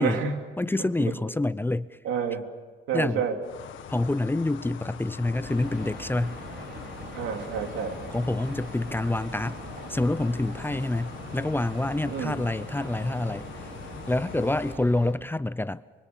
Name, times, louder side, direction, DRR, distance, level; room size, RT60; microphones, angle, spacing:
voice 1, 0.0-0.4 2.0-2.5 2.9-3.4 7.1-8.0 12.1-12.3, right 7 dB, 85° right, 2.9 m, -29 dB
voice 2, 0.6-2.0 2.9-3.3 3.9-6.4 8.1-9.6 9.9-13.5 14.1-15.8, left 2 dB, 10° left, 0.6 m, -27 dB
sound 1, 3.4-14.7, left 9 dB, 75° left, 1.9 m, -43 dB
sound 2, 5.4-15.1, right 2 dB, 60° right, 4.7 m, -41 dB
25.5 x 23.5 x 6.9 m
cardioid pair, 90°, 20 cm